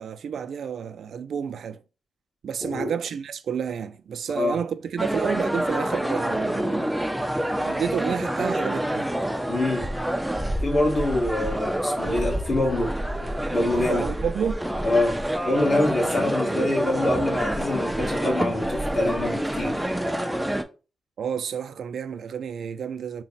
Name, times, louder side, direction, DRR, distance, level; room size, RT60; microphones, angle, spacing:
voice 1, 0.0-1.8 2.4-6.9 7.5-9.1 13.8-14.6 21.2-23.2, right 7 dB, 75° right, 0.3 m, -30 dB
voice 2, 2.6-2.9 4.3-4.6 9.5-9.9 10.6-13.0 13.5-14.0 14.8-19.8, left 1 dB, 40° left, 1.5 m, -25 dB
sound 1, 5.0-20.6, right 1 dB, 5° right, 0.4 m, -27 dB
3.9 x 2.1 x 4.0 m
cardioid pair, 105°, 0 cm